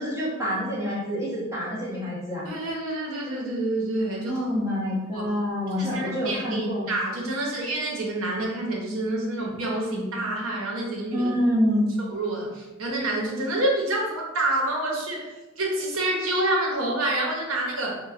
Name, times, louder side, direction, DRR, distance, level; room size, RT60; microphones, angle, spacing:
voice 1, 0.0-2.5 4.2-6.9 11.1-11.9, equal, 15° right, -7 dB, 0.9 m, -26 dB
voice 2, 2.4-4.4 5.1-5.3 5.8-11.2 12.1-15.3 15.6-18.0, right 1 dB, 90° right, -2 dB, 0.8 m, -27 dB
4.2 x 2.2 x 2.4 m, 1.1 s
head